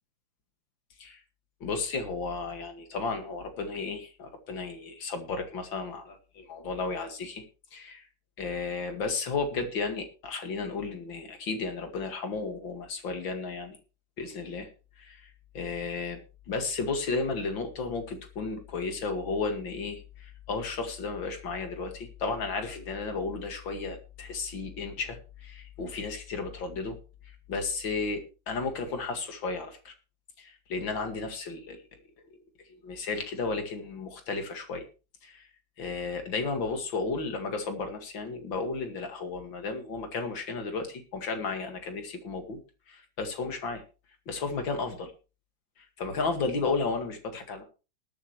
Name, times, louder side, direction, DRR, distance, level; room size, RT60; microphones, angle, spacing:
voice 1, 1.6-7.4 7.7-8.0 8.4-13.8 14.2-14.7 15.0-16.2 16.5-27.0 27.5-29.9 30.4-31.8 32.7-34.9 35.2-35.5 35.8-42.6 42.9-43.8 44.3-45.1 45.8-47.6, left 4 dB, 90° left, 6 dB, 2.8 m, -33 dB
21.0 x 9.0 x 3.1 m, 0.32 s
omnidirectional pair, 2.0 m